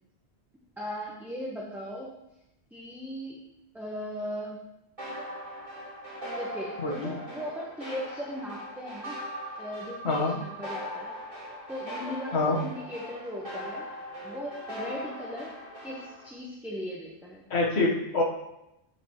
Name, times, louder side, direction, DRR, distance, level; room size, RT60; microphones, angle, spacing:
voice 1, 0.8-2.1 2.7-3.4 3.7-4.7 6.4-9.2 9.6-11.1 11.7-13.9 14.2-15.5 15.8-17.4, equal, ahead, -3 dB, 0.8 m, -38 dB
sound 1, 5.0-16.3, equal, 30° right, 3.4 m, -40 dB
voice 2, 17.5-18.2, left 3 dB, 75° left, -3 dB, 1.5 m, -25 dB
12.0 x 5.0 x 3.0 m, 0.88 s
omnidirectional pair, 1.1 m